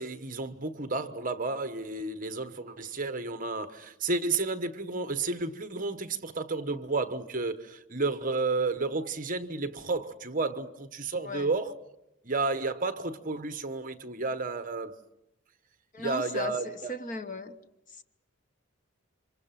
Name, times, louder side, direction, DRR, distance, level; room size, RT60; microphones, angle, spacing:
voice 1, 0.0-11.7 12.2-15.0 16.0-17.0, right 3 dB, 40° right, 1.1 m, -32 dB
voice 2, 15.9-17.6 17.9-18.0, left 2 dB, 40° left, 1.2 m, -37 dB
29.0 x 25.5 x 5.9 m
head